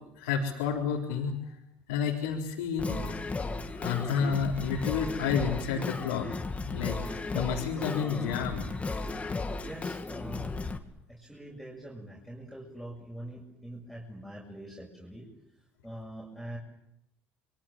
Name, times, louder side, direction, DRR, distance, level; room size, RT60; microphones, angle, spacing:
voice 1, 0.2-1.5 1.9-3.4 3.8-6.3 6.7-8.7, left 6 dB, 85° left, -3 dB, 4.1 m, -30 dB
Singing, 2.8-10.8, left 3 dB, 25° left, 2.6 m, -35 dB
voice 2, 9.6-10.6 11.1-15.3 15.8-16.6, right 1 dB, ahead, -4 dB, 7.1 m, -43 dB
27.5 x 23.0 x 7.6 m, 0.85 s
hypercardioid pair, 75°, 6 cm